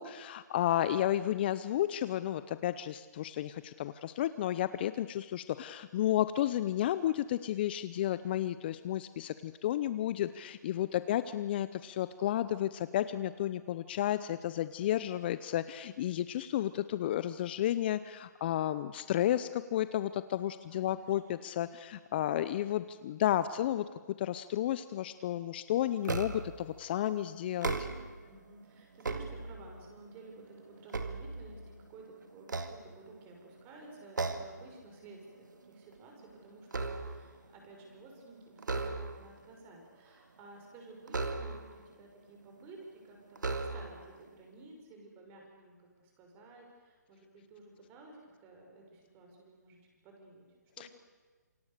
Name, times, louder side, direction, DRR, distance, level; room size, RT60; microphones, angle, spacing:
voice 1, 0.0-23.9 24.2-27.9 50.8-50.9, left 12 dB, 35° left, 14 dB, 0.7 m, -32 dB
voice 2, 10.9-11.2 14.9-15.3 20.7-21.0 22.2-22.5 28.3-45.8 46.0-50.5 50.8-50.9, right 2 dB, 20° right, 1 dB, 6.1 m, -54 dB
Ruler Twangs, 26.0-26.6 27.5-28.3 28.8-29.9 30.4-31.9 32.4-33.4 34.2-34.7 35.0-35.3 35.7-37.4 38.6-39.4 41.1-41.9 42.6-42.7 43.4-44.1, right 3 dB, 85° right, 2.2 m, -37 dB
27.5 x 25.0 x 6.8 m, 1.4 s
hypercardioid pair, 150°, 10 cm